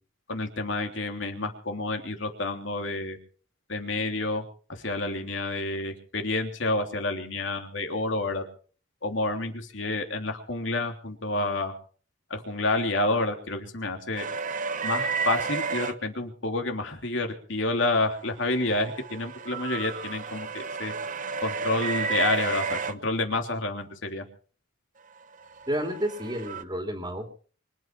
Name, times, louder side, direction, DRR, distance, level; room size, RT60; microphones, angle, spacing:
voice 1, 0.3-3.2 3.7-4.4 4.7-8.4 9.0-11.7 12.3-14.2 14.8-20.9 21.4-24.2, left 2 dB, 70° left, 4 dB, 3.2 m, -29 dB
sound 1, 14.2-15.9 18.3-22.9 25.3-26.6, right 5 dB, 40° right, 0.9 m, -31 dB
voice 2, 25.7-27.3, equal, 20° right, 4 dB, 2.8 m, -31 dB
24.5 x 9.3 x 6.0 m, 0.44 s
head